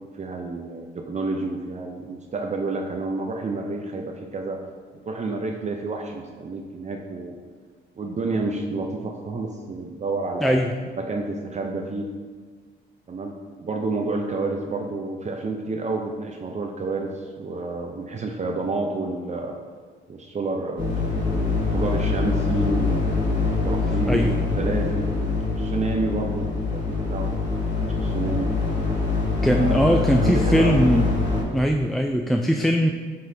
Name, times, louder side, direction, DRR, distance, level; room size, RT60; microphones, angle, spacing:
voice 1, 0.0-4.6 5.0-7.3 8.0-10.6 11.0-12.1 13.1-13.3 13.6-19.6 20.1-23.0 23.5-25.1 25.6-27.3 27.7-28.5 29.5-30.8, right 3 dB, 35° right, 2 dB, 0.6 m, -29 dB
voice 2, 10.4-10.7 24.1-24.4 29.4-31.1 31.5-32.9, equal, ahead, 3 dB, 0.3 m, -20 dB
sound 1, 20.8-31.4, left 3 dB, 65° left, 1.8 m, -24 dB
10.0 x 4.0 x 2.7 m, 1.5 s
cardioid pair, 90°, 20 cm